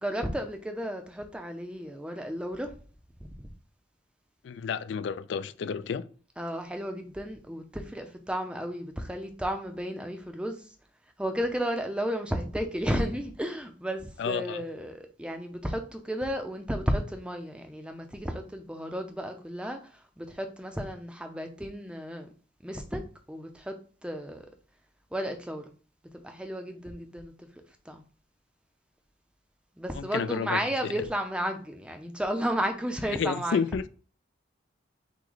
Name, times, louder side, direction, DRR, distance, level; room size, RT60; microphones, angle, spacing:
voice 1, 0.0-2.7 3.4-3.5 6.4-10.7 11.2-22.3 22.6-23.0 23.3-23.8 24.0-24.5 25.1-25.6 26.1-27.5 27.9-28.0 29.8-33.6, equal, 5° right, 0.5 m, -33 dB
voice 2, 4.4-6.1 14.2-14.6 29.9-30.6 33.1-33.8, left 6 dB, 60° left, 0.3 m, -30 dB
5.9 x 2.2 x 3.9 m
head